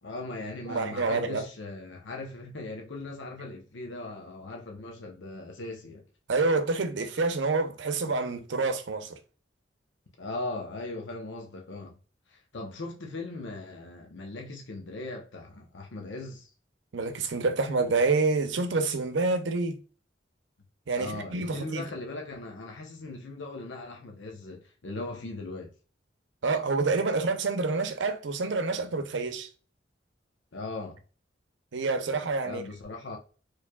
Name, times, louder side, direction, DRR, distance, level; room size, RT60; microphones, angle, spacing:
voice 1, 0.0-6.0 10.2-12.0 12.3-16.5 21.0-25.7 30.5-31.0 32.4-33.2, left 2 dB, 85° left, 0.8 m, -39 dB
voice 2, 0.7-1.5 6.3-9.2 16.9-19.8 20.9-21.9 26.4-29.5 31.7-32.6, right 3 dB, 80° right, 0.6 m, -27 dB
4.6 x 3.1 x 2.2 m
head